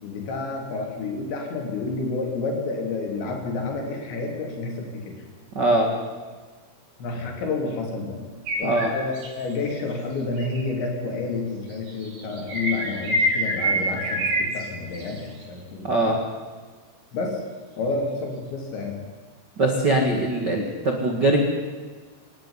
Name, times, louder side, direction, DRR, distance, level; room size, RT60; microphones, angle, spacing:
voice 1, 0.0-5.2 7.0-8.2 8.6-16.1 17.1-17.4 17.8-19.0, left 3 dB, 70° left, 1 dB, 5.5 m, -29 dB
voice 2, 5.5-5.9 8.6-8.9 15.8-16.2 19.6-21.4, right 2 dB, 50° right, 1 dB, 1.2 m, -21 dB
sound 1, 8.5-9.3 10.4-10.6 11.9-14.6 14.9-15.2, right 1 dB, 65° right, 7.0 m, -26 dB
25.5 x 12.0 x 9.8 m, 1.4 s
omnidirectional pair, 5.4 m